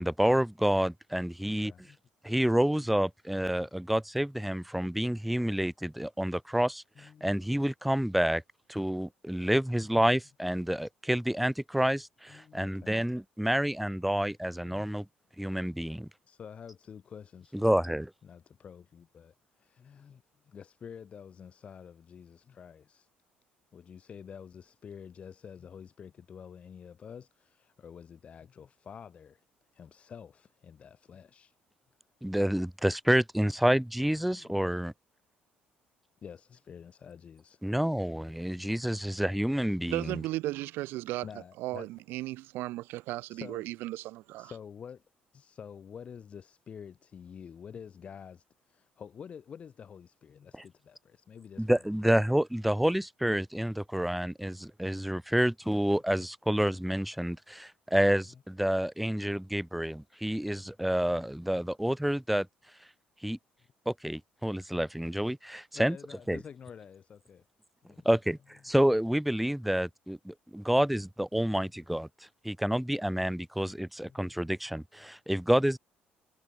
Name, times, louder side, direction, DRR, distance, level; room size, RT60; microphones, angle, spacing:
voice 1, 0.0-1.7 2.2-8.4 8.7-15.1 15.4-16.1 17.5-18.1 32.2-34.9 37.6-40.2 51.6-62.5 63.2-63.4 63.9-66.0 66.3-66.4 68.0-72.1 72.4-75.8, equal, ahead, 0.9 m, -28 dB
voice 2, 1.4-2.0 6.9-7.4 12.3-12.9 16.2-17.8 18.2-23.1 23.7-29.4 29.7-31.5 34.4-34.6 36.2-37.6 39.8-39.9 41.2-41.9 43.3-43.6 44.4-45.0 45.3-52.3 58.3-58.4 65.7-67.5 67.8-68.1 74.0-74.4, left 7 dB, 35° left, 5.0 m, -48 dB
voice 3, 39.9-41.3 41.6-44.5, right 18 dB, 80° right, 0.5 m, -35 dB
cardioid pair, 155°, 4 cm